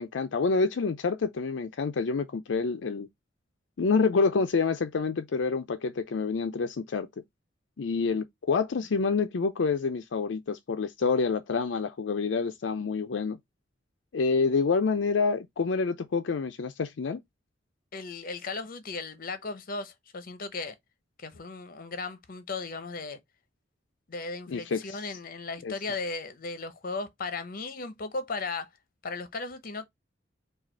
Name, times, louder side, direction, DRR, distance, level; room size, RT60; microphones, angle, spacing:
voice 1, 0.0-3.1 3.8-7.1 7.8-13.4 14.1-17.2 24.5-25.0 25.6-25.7, left 4 dB, 75° left, 0.5 m, -27 dB
voice 2, 17.9-20.7 21.2-23.2 24.1-28.7 29.0-29.9, left 3 dB, 50° left, 0.8 m, -36 dB
4.8 x 2.4 x 4.4 m
head